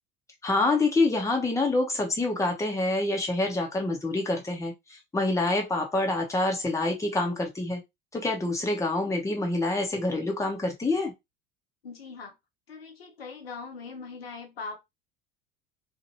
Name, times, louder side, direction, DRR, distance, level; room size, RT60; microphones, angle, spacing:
voice 1, 0.4-7.8 8.1-11.1, left 2 dB, 10° left, 1.1 m, -26 dB
voice 2, 11.8-12.3 12.7-14.8, left 4 dB, 75° left, 0.9 m, -41 dB
2.9 x 2.5 x 2.9 m
figure-of-eight pair, 70°, 30 cm